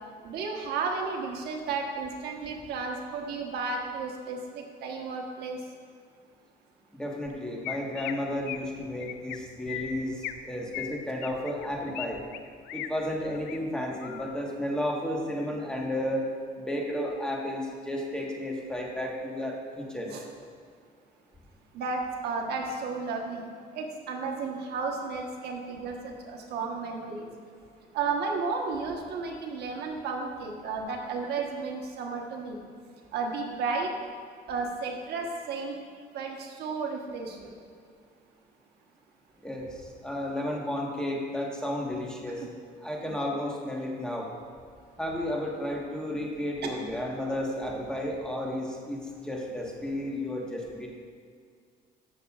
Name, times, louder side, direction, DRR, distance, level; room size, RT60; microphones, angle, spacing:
voice 1, 0.2-5.6 20.1-20.2 21.7-23.5 23.7-27.3 27.9-32.6 33.1-33.9 34.5-35.7 36.1-37.5 43.0-43.2 46.6-46.7, right 4 dB, 75° right, 1 dB, 1.2 m, -33 dB
voice 2, 6.9-12.2 12.7-16.2 16.6-20.1 39.4-42.4 42.8-44.3 45.0-50.9, left 1 dB, 5° left, -2 dB, 1.3 m, -32 dB
Chirp tweet, 7.3-7.4 7.6-8.1 8.5-8.7 9.0-9.4 9.7-10.4 10.7-12.1 12.3-12.9 13.3-13.6 14.0-14.4, left 11 dB, 85° left, 0.5 m, -37 dB
14.5 x 6.5 x 2.4 m, 2.1 s
cardioid pair, 110°, 17 cm